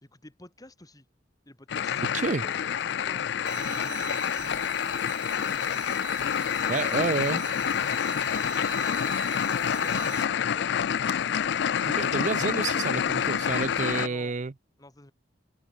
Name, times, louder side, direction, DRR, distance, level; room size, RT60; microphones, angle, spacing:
voice 1, 0.0-1.1 1.4-7.0 7.7-8.2 13.9-14.3 14.8-15.1, left 1 dB, 20° left, 1.6 m, -50 dB
sound 1, 1.7-14.1, left 8 dB, 65° left, 0.4 m, -28 dB
sound 2, 3.5-10.3, right 8 dB, 65° right, 1.5 m, -41 dB
voice 2, 6.7-7.4 11.9-14.5, right 4 dB, 40° right, 0.6 m, -29 dB
head